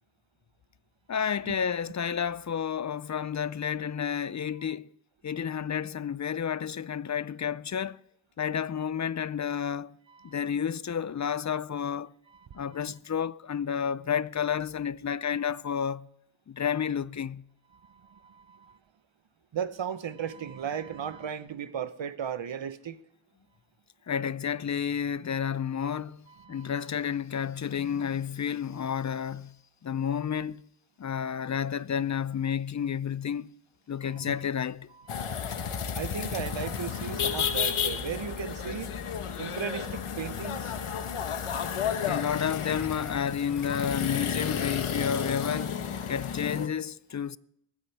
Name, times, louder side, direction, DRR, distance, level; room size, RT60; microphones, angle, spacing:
voice 1, 1.1-4.9 5.2-8.0 8.4-10.0 10.2-12.1 12.5-16.1 16.5-17.4 24.1-29.5 29.8-30.6 31.0-33.5 33.9-34.9 42.1-47.4, left 8 dB, 35° left, 0.4 m, -31 dB
voice 2, 12.3-12.9 17.7-18.8 19.5-23.0 25.8-25.9 26.3-26.9 34.1-34.4 35.0-35.3 35.9-38.9 39.4-40.7 44.9-45.3, right 7 dB, 60° right, 1.0 m, -37 dB
sound 1, 35.1-46.7, left 7 dB, 80° left, 1.2 m, -32 dB
21.5 x 10.0 x 3.4 m
cardioid pair, 60°, 50 cm